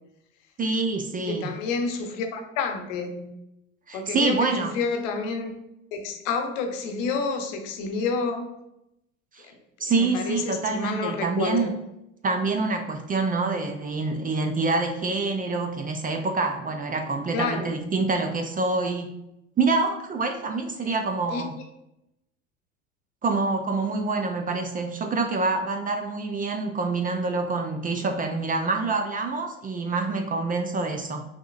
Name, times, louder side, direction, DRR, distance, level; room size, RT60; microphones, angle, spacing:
voice 1, 0.6-1.5 3.9-4.7 9.3-9.5 9.8-11.7 12.2-19.2 19.6-21.5 23.2-31.3, right 3 dB, 20° right, 5 dB, 0.4 m, -26 dB
voice 2, 1.3-3.3 3.9-5.5 5.9-8.5 9.9-11.7 17.3-17.8 20.9-21.0 21.3-21.4, left 4 dB, 70° left, 5 dB, 0.9 m, -29 dB
5.9 x 2.8 x 2.5 m, 0.86 s
hypercardioid pair, 75°, 40 cm